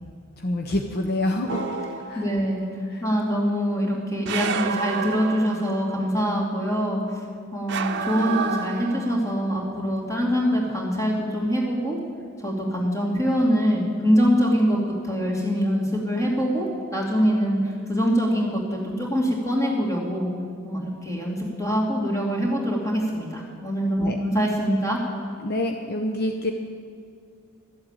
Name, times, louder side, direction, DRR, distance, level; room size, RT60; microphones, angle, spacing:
voice 1, 0.4-1.8 2.0-2.2 2.9-3.0 24.0-24.2 25.4-26.5, left 1 dB, 45° left, 3 dB, 0.7 m, -27 dB
sound 1, 1.5-2.5 4.3-6.0 7.7-9.4, right 5 dB, 55° right, 0.8 m, -30 dB
voice 2, 2.1-2.6 3.0-7.2 7.5-12.0 12.4-14.8 15.0-16.7 16.9-20.3 20.6-25.0, equal, 15° left, -2 dB, 2.5 m, -24 dB
13.0 x 7.8 x 8.8 m, 2.3 s
head